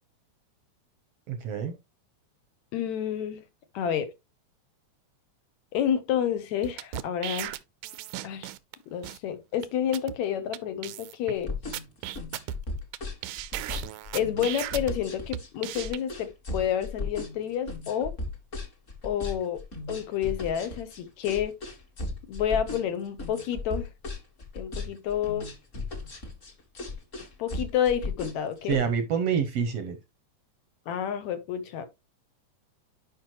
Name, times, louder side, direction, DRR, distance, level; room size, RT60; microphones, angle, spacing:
voice 1, 1.3-1.7 28.7-30.0, right 7 dB, 70° right, 1.6 m, -27 dB
voice 2, 2.7-3.4 3.7-4.1 5.7-7.6 8.2-8.5 8.9-11.5 14.1-18.1 19.0-21.6 22.3-23.9 24.5-25.5 27.4-28.8 30.9-31.9, left 9 dB, 70° left, 2.2 m, -29 dB
sound 1, 6.6-8.7 9.0-9.2 9.6-9.7 9.9-10.1 10.5-10.6 10.8-11.3 11.7-13.0 13.2-14.9 15.3-16.0, right 14 dB, 85° right, 2.1 m, -36 dB
sound 2, 11.4-28.8, left 3 dB, 35° left, 1.5 m, -36 dB
10.5 x 5.1 x 3.0 m
omnidirectional pair, 3.6 m